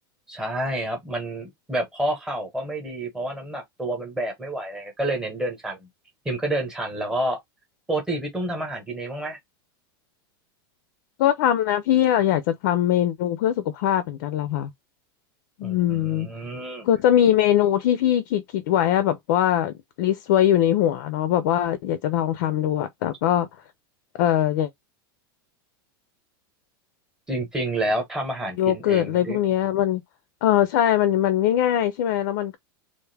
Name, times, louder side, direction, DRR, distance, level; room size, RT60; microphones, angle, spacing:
voice 1, 0.3-5.9 6.2-7.4 7.9-9.4 15.6-16.9 27.3-29.4, right 1 dB, 5° right, 1.1 m, -29 dB
voice 2, 11.2-14.7 15.6-16.3 16.8-23.5 24.2-24.7 28.6-30.0 30.4-32.6, left 11 dB, 50° left, 0.5 m, -21 dB
3.4 x 2.6 x 3.4 m
supercardioid pair, 180°, 12 cm